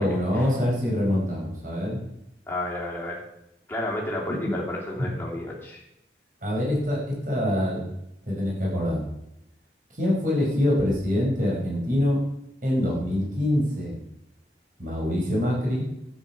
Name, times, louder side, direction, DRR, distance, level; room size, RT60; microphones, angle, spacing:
voice 1, 0.0-2.0 5.0-5.1 6.4-7.8 8.3-9.0 9.9-12.2 12.6-14.0 14.8-15.8, left 1 dB, 45° right, -3 dB, 5.7 m, -25 dB
voice 2, 2.5-3.2 3.7-5.8, left 1 dB, 10° left, -3 dB, 3.0 m, -31 dB
13.0 x 9.2 x 6.1 m, 0.83 s
head